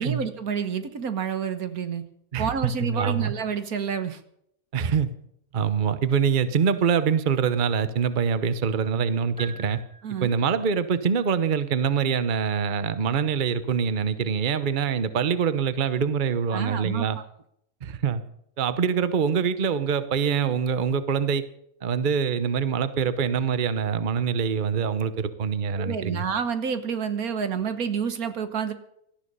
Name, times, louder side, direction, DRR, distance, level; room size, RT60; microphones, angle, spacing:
voice 1, 0.0-2.0 2.4-4.2 10.0-10.4 16.5-17.2 25.8-28.7, right 6 dB, 80° right, 10 dB, 1.7 m, -29 dB
voice 2, 2.3-3.3 4.7-5.1 5.5-9.8 10.2-17.2 17.8-18.2 18.6-21.4 21.8-26.2, right 6 dB, 40° right, 13 dB, 1.0 m, -24 dB
sound 1, 9.4-10.7, right 3 dB, 5° right, 3.0 m, -44 dB
18.0 x 13.5 x 5.5 m, 0.74 s
omnidirectional pair, 1.5 m